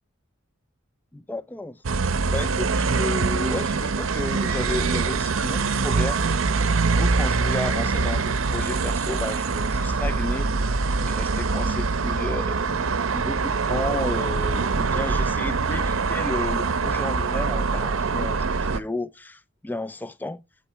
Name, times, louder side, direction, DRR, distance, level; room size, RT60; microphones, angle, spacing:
voice 1, 1.1-1.8 2.3-6.2 7.0-10.5 11.0-12.8 13.1-20.4, left 2 dB, 10° left, 0.3 m, -33 dB
sound 1, 1.8-18.8, right 4 dB, 80° right, 0.7 m, -24 dB
7.3 x 4.4 x 4.5 m
head